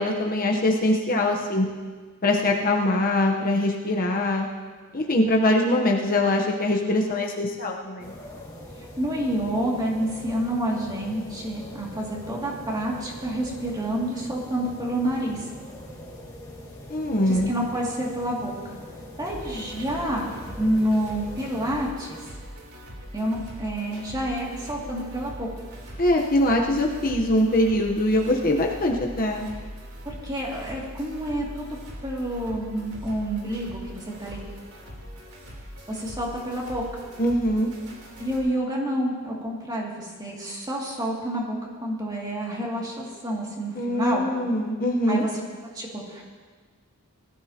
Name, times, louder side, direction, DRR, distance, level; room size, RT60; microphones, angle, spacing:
voice 1, 0.0-1.7 2.2-4.5 4.9-8.1 16.9-17.5 26.0-29.5 37.2-37.7 43.8-45.2, left 1 dB, 40° left, 0 dB, 1.0 m, -23 dB
sound 1, 8.0-21.9, equal, 15° left, 2.0 m, -42 dB
voice 2, 8.8-15.5 17.3-18.5 19.2-20.3 20.5-22.2 23.1-25.5 30.0-31.8 32.0-34.4 35.9-36.8 38.2-44.3 45.1-45.3 45.7-46.2, right 1 dB, 20° right, -3 dB, 2.5 m, -28 dB
sound 2, 19.3-38.4, equal, 85° right, 3.4 m, -41 dB
20.0 x 13.5 x 2.9 m, 1.5 s
head